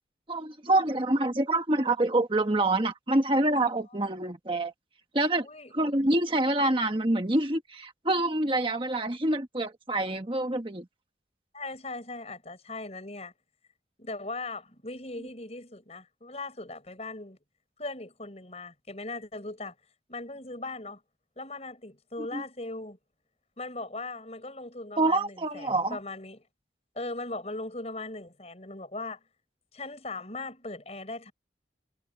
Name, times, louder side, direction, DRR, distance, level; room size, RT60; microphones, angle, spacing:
voice 1, 0.3-4.7 5.1-5.5 5.7-10.9 22.3-22.4 25.0-26.0, right 2 dB, 30° right, 1.3 m, -26 dB
voice 2, 11.5-13.3 14.0-17.4 17.8-19.8 20.1-21.0 21.4-23.0 23.6-26.4 27.0-29.2 29.7-31.3, left 2 dB, 35° left, 5.7 m, -39 dB
head